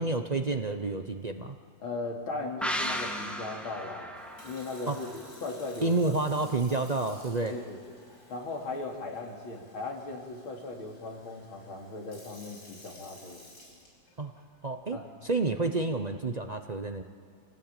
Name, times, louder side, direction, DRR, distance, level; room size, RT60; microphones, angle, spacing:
voice 1, 0.0-1.6 4.9-5.0 5.8-7.5 14.2-14.3 14.6-17.0, right 3 dB, 55° right, 6 dB, 0.4 m, -29 dB
voice 2, 1.8-4.1 4.4-5.1 5.4-6.5 7.4-7.8 8.3-13.5 14.9-15.1, left 3 dB, 90° left, 1 dB, 3.7 m, -38 dB
sound 1, 2.6-6.1 6.4-6.5, equal, ahead, 1.3 m, -36 dB
Sink (filling or washing) / Fill (with liquid), 4.2-14.4 15.0-15.3, left 1 dB, 50° left, 6.2 m, -55 dB
27.5 x 17.5 x 9.0 m, 2.1 s
omnidirectional pair, 2.2 m